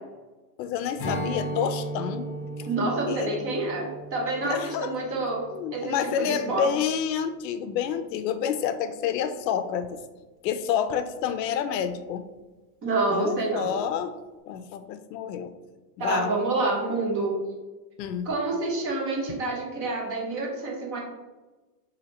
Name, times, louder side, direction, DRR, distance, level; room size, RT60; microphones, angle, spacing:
voice 1, 0.6-2.3 2.6-2.7 3.1-3.4 4.4-4.9 5.5-10.0 10.4-12.3 13.1-14.1 14.5-15.5 16.0-16.3 18.0-18.3, left 8 dB, 90° left, 11 dB, 0.6 m, -29 dB
Strum, 1.0-6.4, right 1 dB, 25° left, 0.7 m, -36 dB
voice 2, 2.7-5.4 5.7-6.7 12.8-13.8 16.0-17.4 18.2-21.0, right 2 dB, 30° right, -1 dB, 0.7 m, -28 dB
3.0 x 2.8 x 4.0 m, 1.2 s
supercardioid pair, 160°, 48 cm